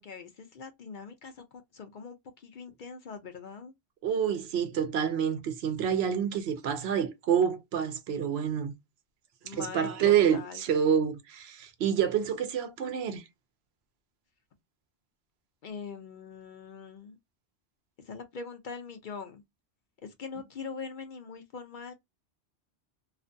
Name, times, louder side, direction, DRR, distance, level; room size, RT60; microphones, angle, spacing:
voice 1, 0.0-1.4 1.7-3.7 9.4-10.6 15.6-17.2 18.0-19.4 20.0-21.9, left 5 dB, 55° left, 0.6 m, -42 dB
voice 2, 4.0-8.7 9.5-13.2, right 8 dB, 75° right, 0.8 m, -28 dB
2.4 x 2.1 x 2.5 m
omnidirectional pair, 1.1 m